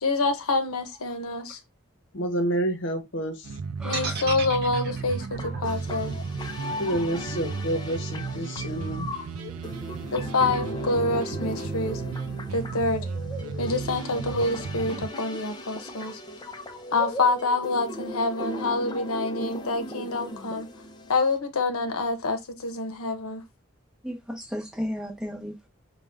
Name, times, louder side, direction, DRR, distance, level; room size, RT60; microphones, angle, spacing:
voice 1, 0.0-1.6 3.8-6.2 10.1-12.0 12.5-13.0 13.6-16.2 16.9-20.7 21.1-23.4, left 3 dB, 85° left, 0.8 m, -27 dB
voice 2, 2.1-3.5 6.8-9.1, right 1 dB, 55° left, 0.9 m, -28 dB
sound 1, 3.4-15.1, right 5 dB, 85° right, 0.4 m, -34 dB
voice 3, 3.8-4.1 24.0-25.7, equal, 5° right, 0.8 m, -34 dB
sound 2, 3.9-8.0, right 4 dB, 45° right, 0.9 m, -36 dB
sound 3, 5.4-21.4, left 1 dB, 20° left, 0.5 m, -37 dB
5.1 x 2.3 x 3.4 m
head